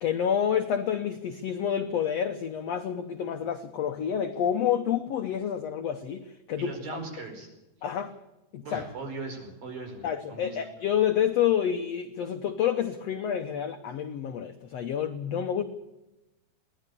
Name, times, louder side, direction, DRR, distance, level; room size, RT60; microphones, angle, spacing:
voice 1, 0.0-6.7 7.8-8.1 8.5-8.9 10.0-15.6, left 9 dB, 80° left, 8 dB, 1.4 m, -28 dB
voice 2, 6.6-7.5 8.6-10.6, right 3 dB, 65° right, 4 dB, 6.5 m, -39 dB
22.0 x 17.5 x 7.0 m, 0.98 s
omnidirectional pair, 4.3 m